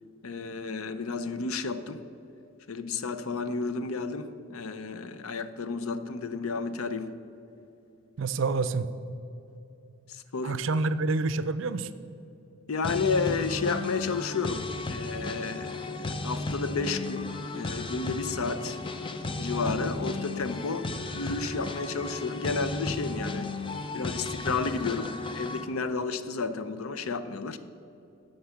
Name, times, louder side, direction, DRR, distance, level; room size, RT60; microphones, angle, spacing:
voice 1, 0.2-2.0 2.7-7.2 10.1-10.6 12.7-18.8 19.4-20.9 21.1-23.6 23.9-27.6, left 4 dB, 80° left, 12 dB, 0.6 m, -32 dB
voice 2, 8.2-8.9 10.4-11.9, right 3 dB, 60° right, 14 dB, 0.5 m, -27 dB
sound 1, 12.8-25.6, left 3 dB, 25° left, 0.5 m, -34 dB
11.5 x 5.4 x 7.1 m, 2.8 s
head